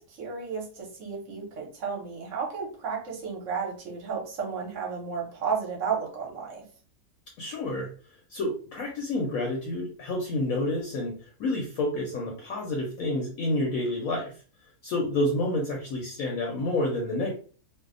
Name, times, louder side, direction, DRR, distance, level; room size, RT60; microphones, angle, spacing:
voice 1, 0.0-6.6, right 5 dB, 60° right, 0 dB, 1.0 m, -33 dB
voice 2, 7.4-7.9 8.3-11.1 11.4-14.3 14.8-17.3, left 2 dB, 70° left, 0 dB, 0.9 m, -29 dB
2.6 x 2.0 x 2.4 m, 0.40 s
omnidirectional pair, 1.7 m